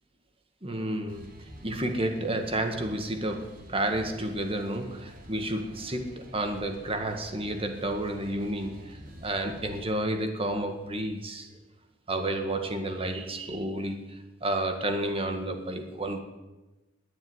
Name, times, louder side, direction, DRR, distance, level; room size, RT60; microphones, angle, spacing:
voice 1, 0.6-11.5 12.1-16.2, right 1 dB, 30° right, 5 dB, 1.9 m, -31 dB
sound 1, 1.1-9.9, equal, 45° right, 3.2 m, -48 dB
20.0 x 7.3 x 9.7 m, 1.1 s
head